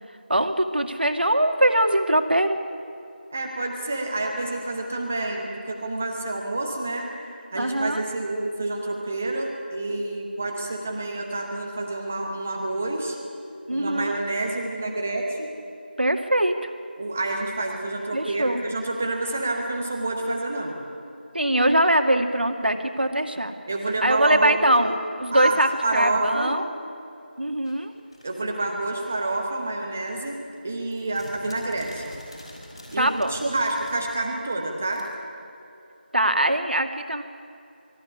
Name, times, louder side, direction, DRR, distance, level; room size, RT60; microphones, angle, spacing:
voice 1, 0.3-2.6 7.5-8.0 13.7-14.2 16.0-16.7 18.1-18.7 21.3-23.6 24.0-24.9 25.2-26.7 27.4-27.9 33.0-33.4 36.1-37.2, right 1 dB, 65° right, 5 dB, 2.2 m, -22 dB
voice 2, 3.3-7.1 7.5-13.2 13.7-15.5 17.0-20.8 23.7-24.6 25.3-26.6 28.2-30.4 30.6-32.1 32.9-35.0, right 2 dB, 10° right, 1 dB, 0.9 m, -28 dB
sound 1, 27.6-29.7 30.0-35.0, left 1 dB, 30° left, 5.6 m, -46 dB
23.5 x 14.0 x 9.9 m, 2.6 s
figure-of-eight pair, 175°, 6 cm